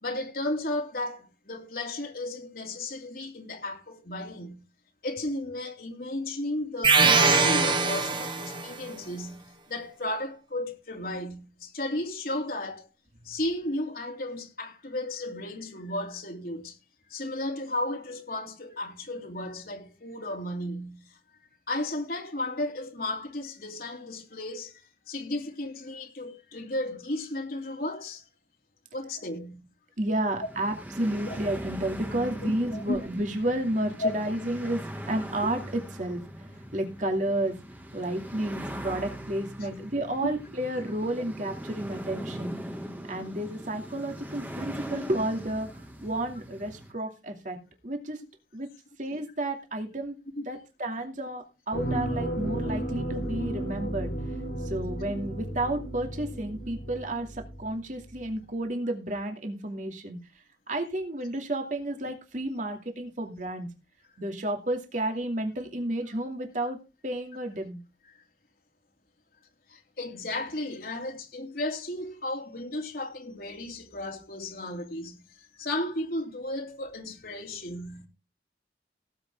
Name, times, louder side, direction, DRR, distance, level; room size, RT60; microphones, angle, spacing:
voice 1, 0.0-4.6 5.0-12.9 13.2-16.8 17.1-21.2 21.7-24.8 25.1-28.3 28.9-29.7 31.2-31.4 32.4-33.0 34.0-34.1 39.6-39.9 52.4-52.6 69.7-78.1, left 1 dB, 55° left, 3.0 m, -34 dB
sound 1, 6.8-8.7, right 4 dB, 25° right, 1.5 m, -22 dB
voice 2, 30.0-36.2 36.7-37.5 37.9-42.5 43.1-45.7 46.0-47.6 47.8-48.2 48.5-48.7 49.0-50.2 50.5-54.1 54.6-60.2 60.7-63.7 64.2-66.8 67.0-67.8, right 1 dB, 45° right, 2.6 m, -31 dB
sound 2, 30.1-46.9, equal, 10° right, 2.0 m, -40 dB
sound 3, 51.7-57.8 58.2-58.3, right 1 dB, 80° left, 5.5 m, -33 dB
17.5 x 8.2 x 3.7 m
head